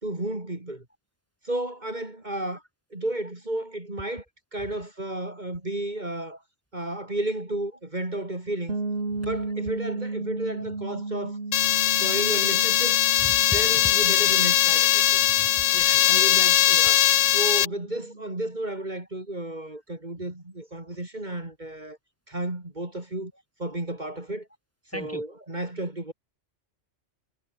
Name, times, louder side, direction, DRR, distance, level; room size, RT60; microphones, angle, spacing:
voice 1, 0.0-0.9 1.4-2.6 2.9-4.2 4.5-6.4 6.7-8.8 9.2-11.4 11.8-13.0 13.5-15.0 16.1-17.0 17.3-22.0 22.3-23.3 23.6-24.5 24.9-26.1, right 1 dB, 40° right, 3.8 m, -32 dB
sound 1, 8.7-18.4, right 3 dB, 55° right, 3.1 m, -35 dB
sound 2, 11.5-17.7, left 13 dB, 90° left, 0.9 m, -20 dB
voice 2, 13.2-13.9 15.4-16.1 24.9-25.2, equal, 10° left, 4.5 m, -38 dB
omnidirectional pair, 1.2 m